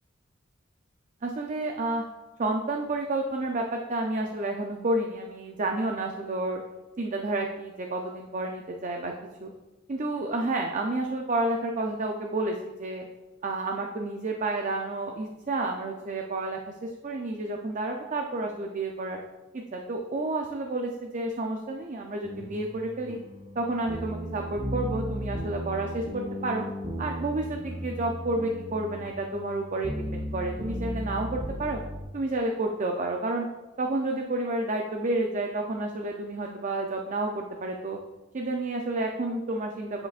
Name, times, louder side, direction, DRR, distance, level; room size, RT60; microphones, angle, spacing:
voice 1, 1.2-2.0 2.4-6.6 7.0-9.1 9.4-9.5 9.9-13.1 13.4-19.2 19.7-23.2 23.6-26.6 27.0-31.8 32.1-33.5 33.8-38.0 38.3-40.1, right 2 dB, 40° right, 2 dB, 0.5 m, -30 dB
sound 1, 22.2-32.0, equal, 20° right, 0.9 m, -36 dB
10.5 x 5.0 x 2.5 m, 1.1 s
head